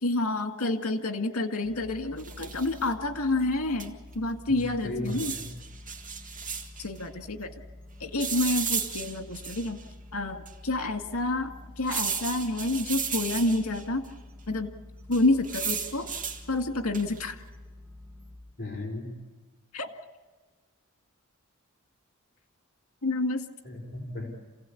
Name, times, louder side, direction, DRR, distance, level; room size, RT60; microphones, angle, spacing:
voice 1, 0.0-5.3 6.8-7.5 8.0-9.8 10.1-14.0 14.5-14.7 15.1-16.1 16.5-17.4 19.7-19.9 23.0-23.4, left 2 dB, 85° left, 6 dB, 2.0 m, -28 dB
sound 1, 1.6-18.4, left 1 dB, 10° right, 4.6 m, -48 dB
sound 2, 2.2-2.8 3.8-3.9 4.1-4.2 5.0-6.9 8.2-9.8 10.4-10.5 11.8-13.8 15.1-16.4 16.9-17.3, right 6 dB, 40° right, 2.1 m, -34 dB
voice 2, 4.5-5.5 18.6-19.2 23.6-24.3, left 1 dB, 45° left, -1 dB, 4.2 m, -36 dB
27.5 x 16.5 x 8.5 m, 1.3 s
head